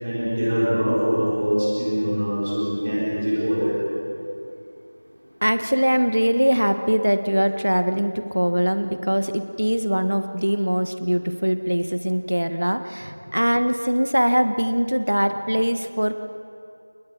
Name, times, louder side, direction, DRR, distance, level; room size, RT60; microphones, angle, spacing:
voice 1, 0.0-3.8, equal, 15° right, -8 dB, 3.9 m, -23 dB
voice 2, 5.4-16.2, equal, 55° right, 9 dB, 1.4 m, -22 dB
28.5 x 22.0 x 6.1 m, 2.6 s
figure-of-eight pair, 180°, 0 cm